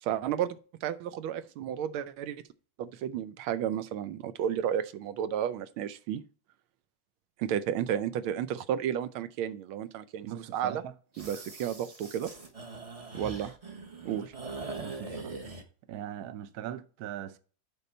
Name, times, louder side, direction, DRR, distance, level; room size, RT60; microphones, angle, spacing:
voice 1, 0.0-2.4 2.8-6.2 7.4-10.8 11.2-12.3 13.1-13.5 14.0-14.3, right 9 dB, 85° right, 1.5 m, -32 dB
voice 2, 10.2-10.9 11.3-11.4 13.2-13.3 14.7-15.4 15.9-17.4, right 10 dB, 65° right, 1.0 m, -40 dB
sound 1, 11.1-15.6, right 3 dB, 35° right, 0.6 m, -42 dB
8.1 x 5.4 x 4.3 m
omnidirectional pair, 2.2 m